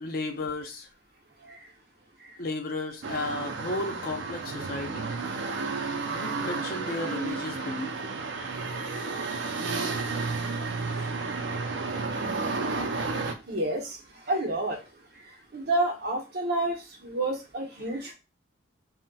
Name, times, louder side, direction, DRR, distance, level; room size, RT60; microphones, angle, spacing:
voice 1, 0.0-0.9 2.4-5.0 6.1-7.9, left 2 dB, 55° left, 4 dB, 0.6 m, -34 dB
sound 1, 3.0-13.3, right 4 dB, 85° right, 0.5 m, -32 dB
voice 2, 13.5-14.0 14.3-14.8 15.5-18.1, right 2 dB, 60° right, 2 dB, 0.8 m, -29 dB
4.0 x 2.1 x 2.2 m, 0.28 s
head